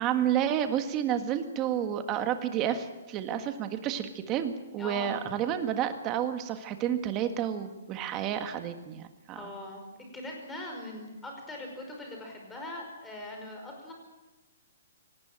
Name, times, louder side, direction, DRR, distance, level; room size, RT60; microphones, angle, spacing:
voice 1, 0.0-9.5, right 10 dB, 20° right, 8 dB, 1.7 m, -30 dB
voice 2, 4.8-5.1 9.3-9.9 10.1-13.9, left 1 dB, 5° left, 1 dB, 5.2 m, -41 dB
25.0 x 19.0 x 8.8 m, 1.1 s
hypercardioid pair, 170°, 0 cm